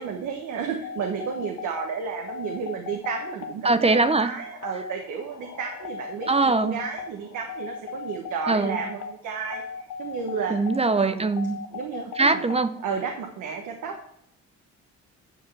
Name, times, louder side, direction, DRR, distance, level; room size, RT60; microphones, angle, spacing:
voice 1, 0.0-9.6 10.0-10.6 10.9-11.3 11.7-12.5 12.8-14.0, right 6 dB, 85° right, 2 dB, 1.3 m, -32 dB
sound 1, 0.8-12.9, left 5 dB, 65° left, 1.2 m, -38 dB
voice 2, 3.6-4.3 6.3-6.8 8.5-8.8 10.5-11.6 12.2-12.8, right 3 dB, 20° right, 11 dB, 0.7 m, -22 dB
9.7 x 4.9 x 5.5 m, 0.70 s
cardioid pair, 90°, 30 cm